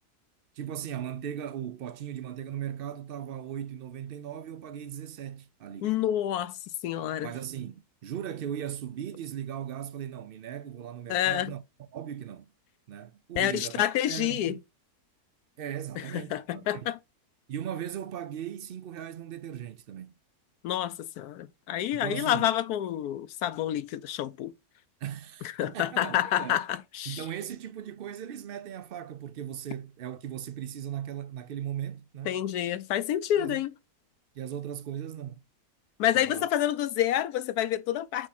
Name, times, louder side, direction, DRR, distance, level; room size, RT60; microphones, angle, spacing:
voice 1, 0.5-6.0 7.2-11.6 11.9-12.5 12.9-14.5 15.6-16.9 17.5-20.1 21.9-22.5 25.0-26.6 27.1-32.4 33.4-33.6 34.3-35.4 36.1-36.5, right 10 dB, 85° right, 0.5 m, -38 dB
voice 2, 5.8-7.3 11.1-11.5 13.4-14.6 16.0-17.0 20.6-24.5 25.6-27.2 32.3-33.7 36.0-38.3, left 12 dB, 80° left, 1.1 m, -28 dB
8.3 x 3.6 x 4.2 m
omnidirectional pair, 1.7 m